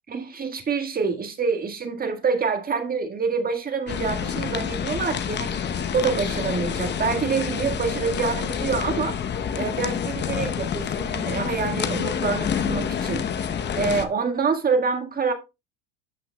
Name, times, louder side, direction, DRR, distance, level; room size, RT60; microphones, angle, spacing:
voice 1, 0.1-5.6 5.9-9.2 9.5-15.3, right 5 dB, 25° right, 1.7 m, -26 dB
sound 1, 3.9-14.1, left 7 dB, 35° left, 0.9 m, -28 dB
12.5 x 5.7 x 2.2 m
hypercardioid pair, 85°, 33 cm